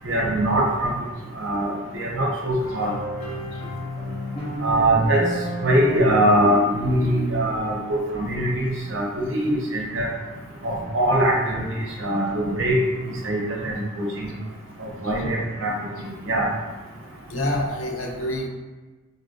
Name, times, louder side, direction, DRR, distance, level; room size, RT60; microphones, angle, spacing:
voice 1, 0.0-0.9 1.4-2.9 4.6-5.2 5.6-7.8 8.1-8.5 8.9-9.0 9.3-10.1 10.6-12.8 13.2-14.3 14.8-15.7 16.2-16.5, right 1 dB, 65° right, -1 dB, 0.7 m, -22 dB
sound 1, 2.6-8.2, right 1 dB, 30° left, 0.8 m, -32 dB
voice 2, 17.3-18.5, left 1 dB, 80° left, 1 dB, 0.5 m, -27 dB
3.9 x 2.1 x 2.6 m, 1.3 s
head